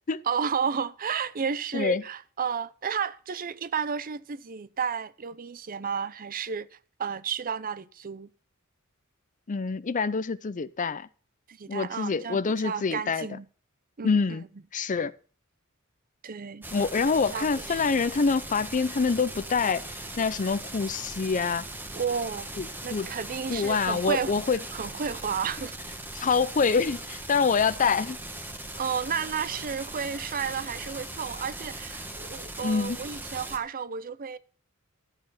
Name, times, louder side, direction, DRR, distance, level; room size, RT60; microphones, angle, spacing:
voice 1, 0.3-6.7 7.0-8.3 11.5-13.5 14.0-14.4 16.2-16.7 17.3-17.8 21.9-22.5 22.8-25.7 28.8-34.4, right 6 dB, 40° right, 0.6 m, -32 dB
voice 2, 9.5-11.1 11.7-13.3 14.0-14.4 14.7-15.1 16.7-21.7 22.6-22.7 22.9-23.1 23.5-24.6 26.1-28.2 32.6-33.0, left 5 dB, 35° left, 0.5 m, -26 dB
sound 1, 16.6-33.6, right 1 dB, 10° right, 1.4 m, -39 dB
12.5 x 8.8 x 5.6 m
head